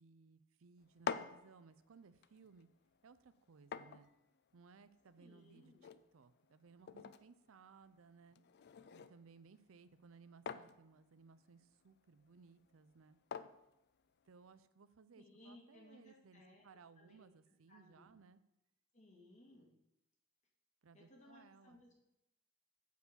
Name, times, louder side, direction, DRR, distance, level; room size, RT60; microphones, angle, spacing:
voice 1, 0.0-2.7 3.0-4.1 4.5-8.4 8.9-13.2 14.2-18.4 20.8-21.8, right 5 dB, 90° right, 14 dB, 0.5 m, -62 dB
sound 1, 0.8-14.7, left 6 dB, 55° left, 0.4 m, -51 dB
voice 2, 5.1-5.9 15.2-16.7 17.0-17.2 17.7-18.1 18.9-19.7 20.9-21.9, left 1 dB, 35° left, -2 dB, 2.2 m, -62 dB
8.1 x 4.7 x 6.7 m, 0.88 s
head